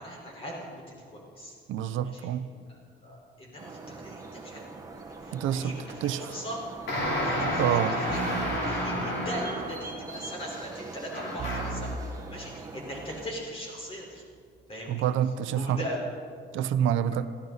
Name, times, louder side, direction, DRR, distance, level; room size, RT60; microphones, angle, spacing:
voice 1, 0.0-1.5 2.2-2.3 2.7-4.8 5.1-6.6 7.2-8.2 8.5-14.2 14.7-15.0 15.5-16.0, equal, 30° left, -2 dB, 4.4 m, -40 dB
voice 2, 1.7-2.5 5.3-6.4 7.6-8.0 14.9-15.8 16.5-17.3, right 10 dB, 80° right, 12 dB, 0.8 m, -27 dB
sound 1, 3.6-13.3, right 3 dB, 15° right, 1.6 m, -43 dB
sound 2, 6.9-9.9 11.1-11.9, left 1 dB, 80° left, 5.8 m, -30 dB
sound 3, 8.1-9.7 11.4-13.1, right 4 dB, 35° right, 0.7 m, -38 dB
22.5 x 15.5 x 4.1 m, 2.1 s
cardioid pair, 180°, 20 cm